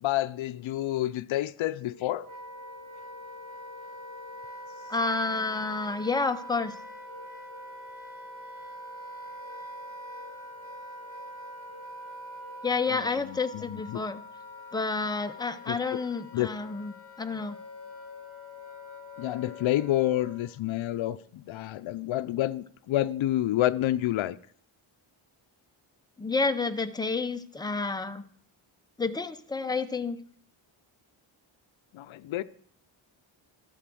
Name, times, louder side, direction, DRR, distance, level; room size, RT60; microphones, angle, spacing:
voice 1, 0.0-2.3 12.9-13.0 13.3-14.0 15.7-15.8 16.3-16.5 19.2-24.4 31.9-32.4, left 14 dB, 75° left, 13 dB, 0.6 m, -29 dB
Wind instrument woodwind instrument, 1.7-20.5, equal, 25° left, 2.6 m, -44 dB
voice 2, 4.9-6.7 12.6-14.2 14.7-16.9 17.2-17.6 26.2-28.2 29.0-30.2, left 4 dB, 10° left, 8 dB, 0.5 m, -29 dB
12.5 x 4.9 x 7.7 m, 0.63 s
wide cardioid pair, 130°, 48 cm